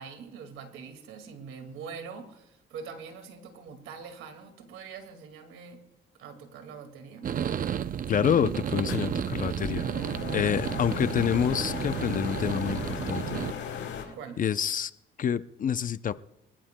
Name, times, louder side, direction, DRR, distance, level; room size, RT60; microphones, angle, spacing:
voice 1, 0.0-5.8 6.2-7.3 14.1-14.4, right 6 dB, 90° right, 7 dB, 2.1 m, -43 dB
sound 1, 7.2-13.5, right 9 dB, 45° right, 0.5 m, -32 dB
voice 2, 8.1-9.9 10.3-13.4 14.4-14.9 15.2-16.1, left 8 dB, 45° left, 14 dB, 0.5 m, -27 dB
sound 2, 8.2-14.0, left 7 dB, 75° left, 4.9 m, -37 dB
25.5 x 15.0 x 2.2 m, 0.88 s
cardioid pair, 90°, 20 cm